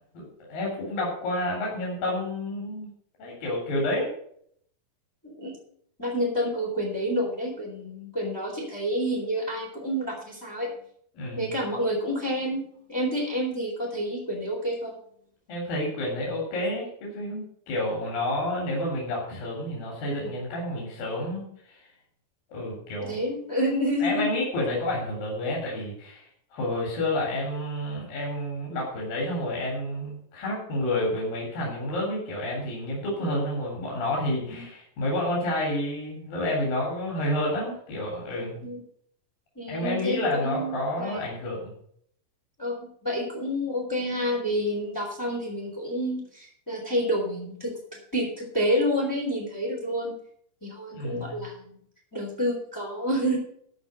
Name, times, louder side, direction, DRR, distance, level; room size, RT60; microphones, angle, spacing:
voice 1, 0.5-2.9 3.2-4.1 11.1-11.4 15.5-21.8 22.5-23.2 24.0-38.6 39.7-41.8 50.9-51.4, left 1 dB, 80° left, -3 dB, 5.0 m, -29 dB
voice 2, 5.2-5.6 6.0-10.7 11.3-12.6 12.9-15.0 23.0-24.2 33.2-33.3 38.6-38.8 39.5-41.2 42.6-47.7 48.1-50.1 50.6-51.8 52.1-53.4, equal, 5° left, -4 dB, 3.2 m, -29 dB
13.5 x 5.3 x 7.8 m, 0.65 s
omnidirectional pair, 4.0 m